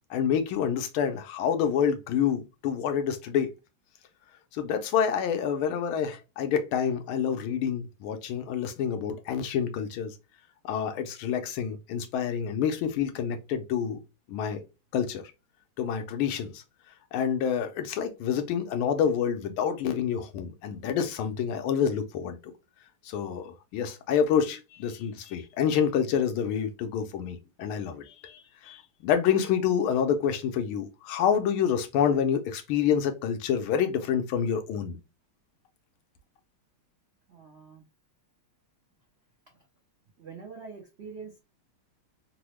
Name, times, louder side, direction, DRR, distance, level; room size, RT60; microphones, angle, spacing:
voice 1, 0.1-3.5 4.5-10.1 10.6-14.0 14.3-14.6 14.9-15.2 15.8-16.6 17.1-22.4 23.0-35.0, left 8 dB, 90° left, 1.5 m, -28 dB
voice 2, 37.3-37.8 39.5-39.7 40.2-41.4, right 5 dB, 90° right, 0.5 m, -44 dB
3.8 x 2.0 x 3.0 m
omnidirectional pair, 2.3 m